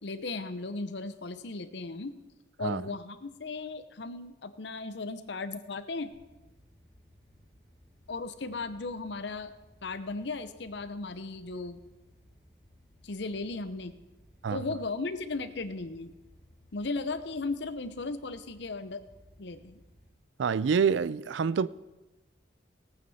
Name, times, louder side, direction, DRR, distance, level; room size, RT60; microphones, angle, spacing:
voice 1, 0.0-2.2 2.6-6.1 8.1-9.5 9.8-11.8 13.0-14.0 14.5-16.1 16.7-19.0 19.4-19.8, left 3 dB, 65° left, 0.8 m, -36 dB
sound 1, 6.1-20.1, equal, 5° left, 3.5 m, -60 dB
voice 2, 20.4-21.7, right 6 dB, 75° right, 0.4 m, -27 dB
18.0 x 9.2 x 4.2 m
head